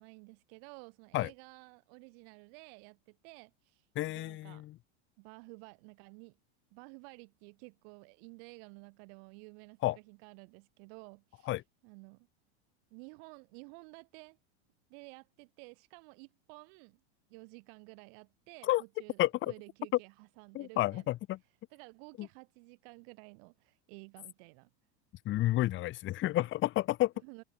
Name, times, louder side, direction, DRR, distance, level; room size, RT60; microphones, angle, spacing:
voice 1, 0.0-4.7 5.2-6.4 6.7-12.3 12.9-14.4 14.9-17.0 17.3-21.1 21.7-24.7 27.2-27.4, right 40 dB or more, 60° right, 5.7 m, -53 dB
voice 2, 3.9-4.6 9.8-10.0 11.5-11.6 18.7-18.8 19.2-19.5 20.5-21.4 25.2-27.1, left 16 dB, 35° left, 1.1 m, -30 dB
supercardioid pair, 125°, 33 cm